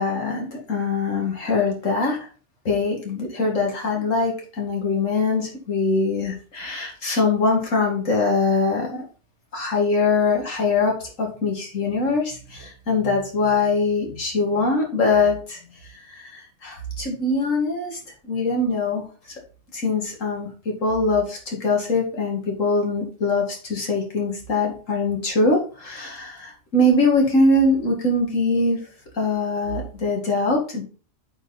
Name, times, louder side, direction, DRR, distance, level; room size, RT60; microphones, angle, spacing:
voice 1, 0.0-2.3 2.6-9.0 9.5-15.6 16.1-18.0 18.3-19.0 19.7-20.5 20.8-28.8 29.1-30.8, left 3 dB, 65° left, 0 dB, 2.7 m, -22 dB
8.7 x 4.6 x 4.1 m, 0.38 s
omnidirectional pair, 1.4 m